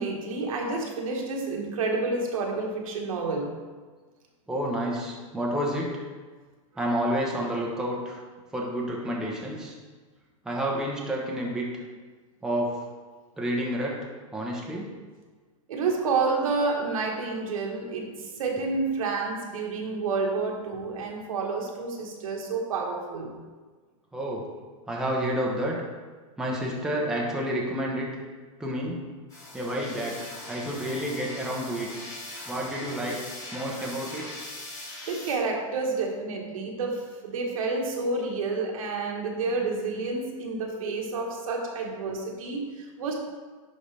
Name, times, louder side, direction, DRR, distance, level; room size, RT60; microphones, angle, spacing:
voice 1, 0.0-3.5 15.7-23.3 35.1-43.1, right 3 dB, 75° right, 0 dB, 1.5 m, -29 dB
voice 2, 4.5-5.9 6.8-8.2 8.5-9.8 10.4-11.7 12.4-12.8 13.4-14.0 14.3-14.9 24.1-24.4 24.9-25.7 26.4-28.1 28.6-29.0 29.5-30.1 30.5-31.9 32.5-33.2 33.5-34.2, equal, 5° right, -3 dB, 0.9 m, -29 dB
sound 1, 29.3-35.4, left 1 dB, 20° left, 2.0 m, -41 dB
11.0 x 3.9 x 3.4 m, 1.4 s
supercardioid pair, 145°, 18 cm